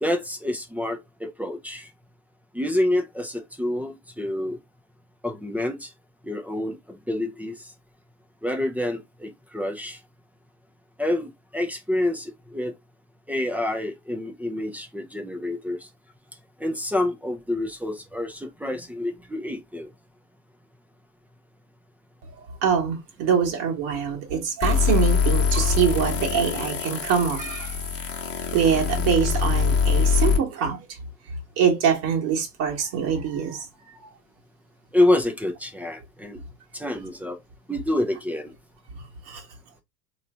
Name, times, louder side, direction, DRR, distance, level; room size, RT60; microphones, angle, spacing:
voice 1, 0.0-1.9 2.5-4.6 5.2-5.9 6.2-7.7 8.4-10.0 11.0-12.7 13.3-15.9 16.6-19.9 34.9-36.4 36.7-37.4 37.7-38.5, left 1 dB, 5° right, 0.7 m, -27 dB
voice 2, 22.6-27.8 28.5-31.0 31.6-33.6 39.0-39.4, right 7 dB, 50° right, 1.7 m, -24 dB
sound 1, 24.6-30.4, left 6 dB, 30° left, 1.2 m, -23 dB
3.8 x 3.2 x 3.4 m
figure-of-eight pair, 80°, 48 cm